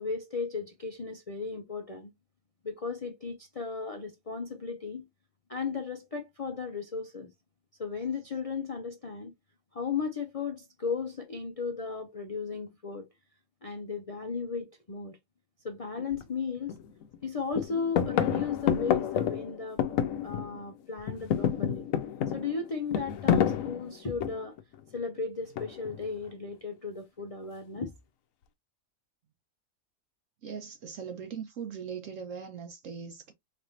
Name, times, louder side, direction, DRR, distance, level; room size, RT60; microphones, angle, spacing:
voice 1, 0.0-2.1 2.6-5.1 5.5-7.3 7.8-9.3 9.7-13.1 13.6-15.2 15.6-16.7 17.2-19.8 20.2-21.8 22.3-24.6 24.9-27.9, left 5 dB, 45° left, 0.4 m, -35 dB
sound 1, 16.1-16.2 16.7-17.2 17.5-20.7 21.0-24.6 25.6-26.0, left 8 dB, 75° left, 1.0 m, -29 dB
voice 2, 30.4-33.3, right 7 dB, 70° right, 1.0 m, -40 dB
4.1 x 3.3 x 2.6 m
omnidirectional pair, 1.5 m